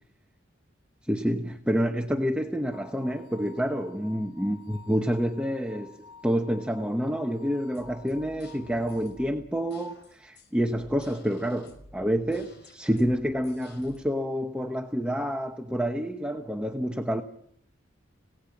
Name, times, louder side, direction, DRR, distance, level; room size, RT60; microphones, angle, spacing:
voice 1, 1.0-6.0 6.2-17.2, equal, 5° right, 1.0 m, -28 dB
sound 1, 2.7-9.3, left 5 dB, 25° right, 2.5 m, -51 dB
sound 2, 7.5-14.0, left 1 dB, 60° left, 6.2 m, -52 dB
27.5 x 18.0 x 6.0 m
head